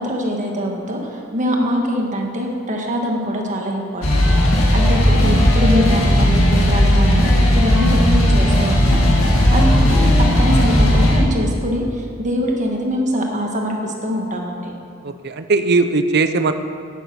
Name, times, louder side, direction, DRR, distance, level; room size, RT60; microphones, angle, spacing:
voice 1, 0.0-4.3 4.5-14.7, equal, 35° right, 1 dB, 1.5 m, -23 dB
sound 1, 4.0-11.2, left 1 dB, 85° left, 2.2 m, -15 dB
voice 2, 15.0-16.5, right 3 dB, 55° right, 9 dB, 0.6 m, -19 dB
9.4 x 9.2 x 6.1 m, 2.3 s
head